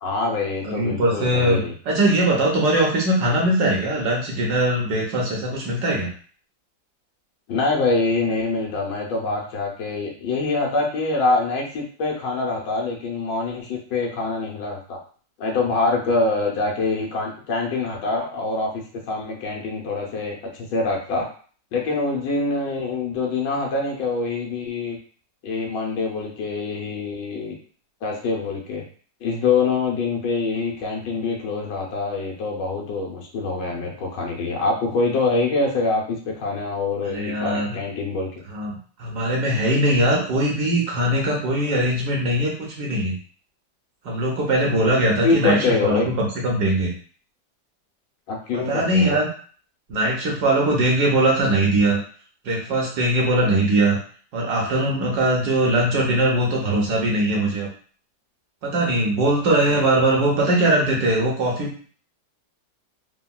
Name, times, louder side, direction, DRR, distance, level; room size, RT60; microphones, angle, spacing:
voice 1, 0.0-1.7 7.5-15.0 15.4-21.3 21.7-25.0 25.4-27.5 28.0-28.8 29.2-38.4 45.2-46.1 48.3-49.2, left 3 dB, 70° left, -1 dB, 1.3 m, -25 dB
voice 2, 0.6-6.1 37.0-37.8 38.5-43.1 44.0-46.9 48.5-49.3 49.9-52.0 52.4-54.0 54.3-57.7 58.6-61.9, right 1 dB, 65° right, -1 dB, 1.1 m, -21 dB
3.6 x 2.2 x 2.2 m, 0.43 s
omnidirectional pair, 2.1 m